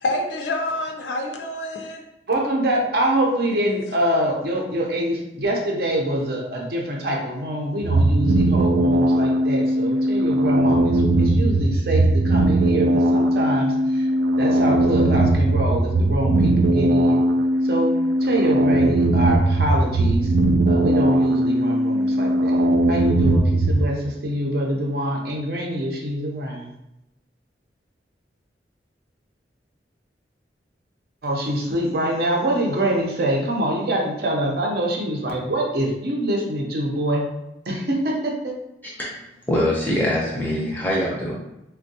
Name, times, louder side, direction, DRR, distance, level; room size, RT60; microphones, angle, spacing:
voice 1, 0.0-2.0, left 1 dB, 80° left, 0.4 m, -27 dB
voice 2, 2.3-14.1 14.4-17.2 17.6-17.9 18.2-20.3 20.6-22.6 22.9-26.7 31.2-37.2 37.7-38.5, right 1 dB, 60° right, 0.6 m, -25 dB
sound 1, 7.8-23.9, right 1 dB, 90° right, 0.3 m, -19 dB
voice 3, 39.5-41.3, left 1 dB, 10° left, 0.5 m, -23 dB
3.4 x 2.2 x 2.7 m
head